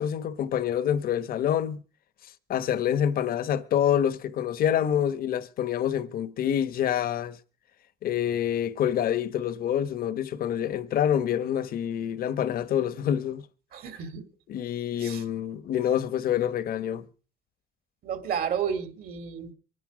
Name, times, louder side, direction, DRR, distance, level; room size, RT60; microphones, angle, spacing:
voice 1, 0.0-1.8 2.5-7.4 8.0-13.5 14.5-17.0, left 10 dB, 60° left, 1.2 m, -27 dB
voice 2, 13.7-14.3 15.0-15.2 18.0-19.5, right 7 dB, 60° right, 2.8 m, -31 dB
24.0 x 10.0 x 5.0 m
cardioid pair, 110°, 17 cm